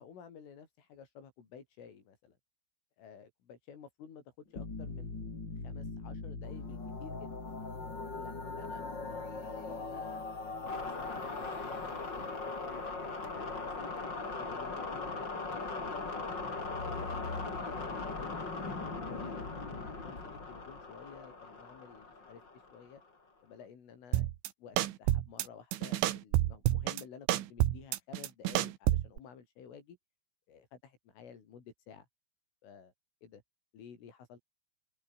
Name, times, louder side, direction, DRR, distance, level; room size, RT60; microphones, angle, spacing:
voice 1, 0.0-2.4 3.0-5.2 5.6-7.6 8.1-13.9 14.3-18.5 18.8-22.4 22.7-23.0 23.4-24.3 24.6-30.0 30.5-32.1 32.6-32.9 33.2-33.4 33.7-34.4, left 7 dB, 75° left, 7.0 m, -53 dB
sound 1, 4.6-23.0, left 3 dB, 25° left, 4.6 m, -39 dB
sound 2, 24.1-24.5 24.8-25.5 25.7-27.0 27.3-29.2, right 15 dB, 75° right, 3.7 m, -29 dB
open air
omnidirectional pair, 5.8 m